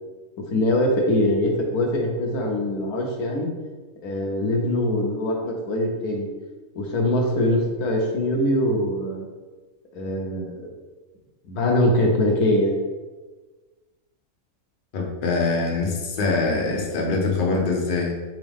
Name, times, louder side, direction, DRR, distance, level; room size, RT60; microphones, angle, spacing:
voice 1, 0.5-3.5 4.0-6.3 6.7-9.3 9.9-10.7 11.4-12.7, left 1 dB, 75° left, 1 dB, 1.3 m, -23 dB
voice 2, 14.9-18.1, left 3 dB, 45° left, -1 dB, 0.8 m, -23 dB
4.0 x 3.7 x 3.5 m, 1.3 s
omnidirectional pair, 1.6 m